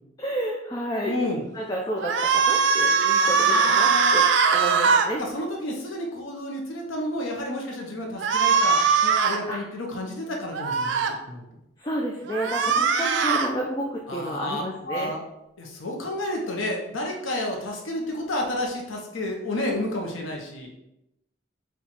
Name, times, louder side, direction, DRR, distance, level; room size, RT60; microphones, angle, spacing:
voice 1, 0.2-5.2 9.5-9.6 11.8-15.1, right 1 dB, 20° left, -2 dB, 0.4 m, -31 dB
voice 2, 1.0-1.4 3.2-4.2 5.2-11.4 14.1-15.2 15.6-20.7, left 1 dB, 90° left, 0 dB, 0.8 m, -31 dB
sound 1, 2.0-5.1 8.2-9.4 10.5-11.1 12.3-13.5, right 5 dB, 70° right, 0.4 m, -21 dB
4.4 x 2.4 x 4.1 m, 0.86 s
head